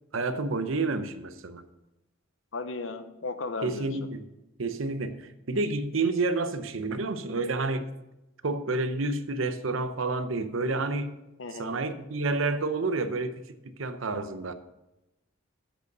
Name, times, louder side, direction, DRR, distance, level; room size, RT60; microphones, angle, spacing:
voice 1, 0.1-1.6 3.6-4.3 4.6-8.0 8.4-11.2 11.6-13.4 13.8-14.5, right 3 dB, 85° right, 0.8 m, -29 dB
voice 2, 2.5-4.1 11.4-11.8, left 3 dB, 75° left, 0.9 m, -35 dB
7.9 x 6.6 x 6.6 m
head